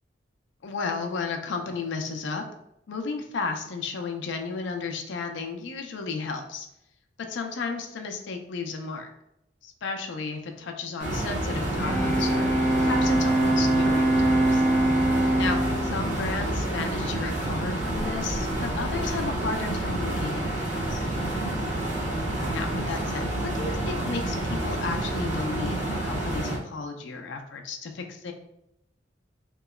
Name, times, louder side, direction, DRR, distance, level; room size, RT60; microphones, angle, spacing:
voice 1, 0.6-2.4 2.9-6.7 7.3-9.1 9.6-14.6 15.4-15.6 15.9-21.1 22.5-28.3, left 4 dB, 70° left, 4 dB, 0.5 m, -33 dB
sound 1, 11.0-26.6, right 1 dB, 45° right, 1.1 m, -29 dB
Bowed string instrument, 11.7-17.3, right 1 dB, 5° left, 0.3 m, -24 dB
3.0 x 2.8 x 2.3 m, 0.81 s
head